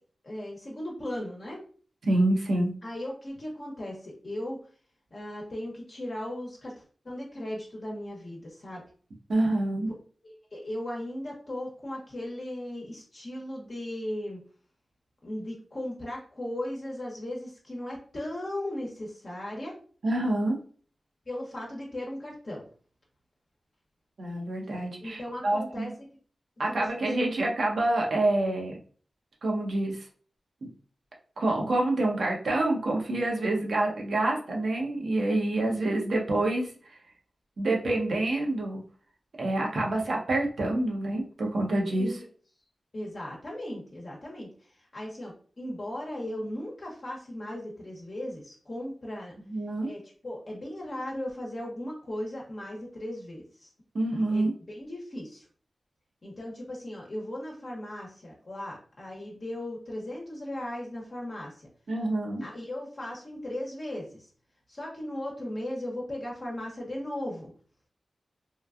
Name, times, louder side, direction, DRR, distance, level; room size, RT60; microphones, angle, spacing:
voice 1, 0.2-1.6 2.8-4.6 5.1-8.8 10.2-14.4 15.2-19.7 21.3-22.6 25.0-25.9 26.7-26.9 35.6-35.7 39.8-40.0 41.9-42.2 42.9-49.3 49.8-53.7 54.3-55.5 56.2-61.7 62.4-64.3 64.7-67.5, left 1 dB, 55° left, -3 dB, 0.8 m, -37 dB
voice 2, 2.1-2.7 9.3-9.9 20.0-20.6 24.2-25.9 26.6-28.8 29.4-30.1 31.4-37.0 37.6-38.8 39.4-42.2 49.5-49.9 53.9-54.5 61.9-62.4, right 2 dB, 75° right, 0 dB, 0.8 m, -27 dB
3.1 x 2.2 x 2.4 m, 0.43 s
cardioid pair, 50°, 0 cm